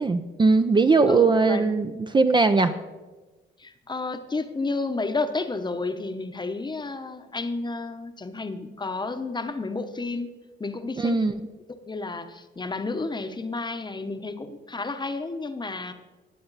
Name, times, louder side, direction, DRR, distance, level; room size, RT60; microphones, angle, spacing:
voice 1, 0.0-2.7 11.0-11.4, right 4 dB, 25° right, 8 dB, 0.5 m, -20 dB
voice 2, 1.1-1.7 3.6-10.3 10.6-11.2 11.9-15.9, left 3 dB, 20° left, 9 dB, 0.9 m, -31 dB
19.0 x 7.7 x 4.0 m, 1.2 s
cardioid pair, 90°, 20 cm